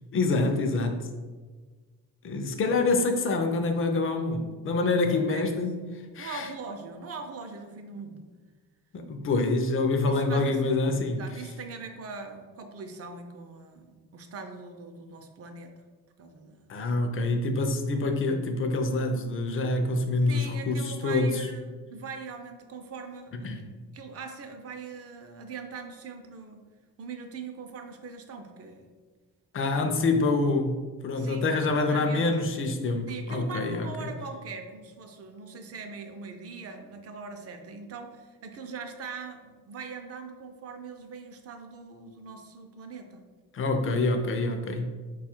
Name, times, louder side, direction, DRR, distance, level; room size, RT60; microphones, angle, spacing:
voice 1, 0.1-1.1 2.2-5.8 6.1-6.5 8.9-11.2 16.7-21.5 23.4-23.6 29.5-33.9 43.5-44.9, left 3 dB, 40° left, 6 dB, 0.4 m, -26 dB
voice 2, 5.1-5.6 6.2-8.2 10.0-10.6 11.2-15.7 16.2-16.7 20.3-23.5 23.9-26.6 27.0-28.9 31.2-32.3 33.1-43.2, right 4 dB, 45° right, 6 dB, 0.5 m, -41 dB
4.6 x 2.4 x 4.3 m, 1.4 s
cardioid pair, 160°, 35 cm